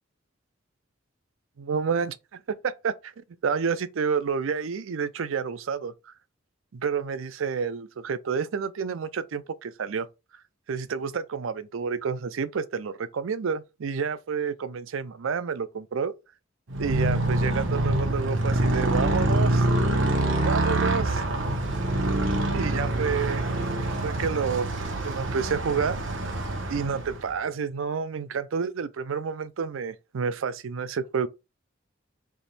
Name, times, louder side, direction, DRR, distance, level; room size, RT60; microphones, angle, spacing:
voice 1, 1.6-3.1 3.4-5.9 6.7-10.1 10.7-16.1 16.8-19.6 20.4-21.2 22.3-23.4 24.0-24.7 25.0-26.0 26.7-31.3, right 6 dB, 85° right, 0.5 m, -29 dB
Motorcycle, 16.7-27.4, right 1 dB, 70° right, 1.0 m, -25 dB
3.5 x 2.9 x 4.1 m
head